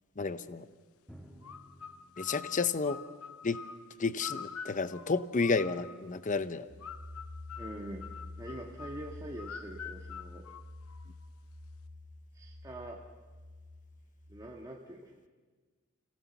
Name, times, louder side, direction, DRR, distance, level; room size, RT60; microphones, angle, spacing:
voice 1, 0.2-0.7 2.2-3.0 3.4-3.6 4.0-6.7, left 4 dB, 35° left, 13 dB, 0.7 m, -31 dB
Drum, 1.1-4.6, equal, 5° left, 1.8 m, -57 dB
sound 1, 1.4-6.1 6.8-11.3, left 7 dB, 90° left, 0.8 m, -46 dB
sound 2, 6.7-14.5, left 2 dB, 65° right, 4.0 m, -48 dB
voice 2, 7.6-8.1 8.4-10.4 12.3-13.0 14.3-15.1, right 1 dB, 20° right, -2 dB, 1.5 m, -44 dB
30.0 x 17.0 x 7.1 m, 1.4 s
head